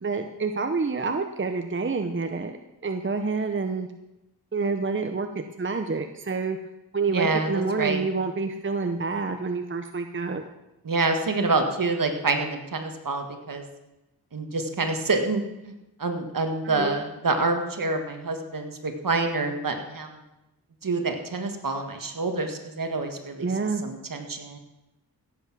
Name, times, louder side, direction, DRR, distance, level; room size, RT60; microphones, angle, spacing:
voice 1, 0.0-2.6 2.8-3.9 4.5-6.6 6.9-10.5 16.6-17.0 23.4-23.8, right 4 dB, 30° right, 6 dB, 0.8 m, -28 dB
voice 2, 7.1-8.0 10.8-13.6 14.3-15.7 16.0-20.2 20.8-23.5 23.8-24.6, right 3 dB, 55° right, 5 dB, 1.8 m, -27 dB
16.0 x 8.3 x 6.2 m, 0.97 s
wide cardioid pair, 80°, 39 cm